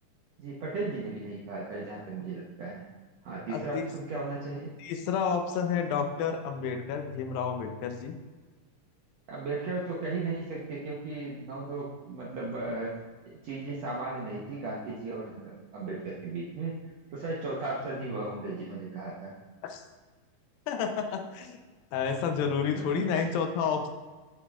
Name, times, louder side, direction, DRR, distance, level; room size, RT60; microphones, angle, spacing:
voice 1, 0.4-2.8 3.2-4.7 9.3-12.9 13.3-16.8 17.1-19.3 22.7-23.2, right 3 dB, 70° right, -5 dB, 1.6 m, -36 dB
voice 2, 3.5-3.9 4.8-8.1 19.6-19.8 20.7-21.6 21.9-23.9, left 6 dB, 80° left, 5 dB, 2.4 m, -30 dB
8.9 x 8.2 x 2.4 m, 1.4 s
omnidirectional pair, 4.3 m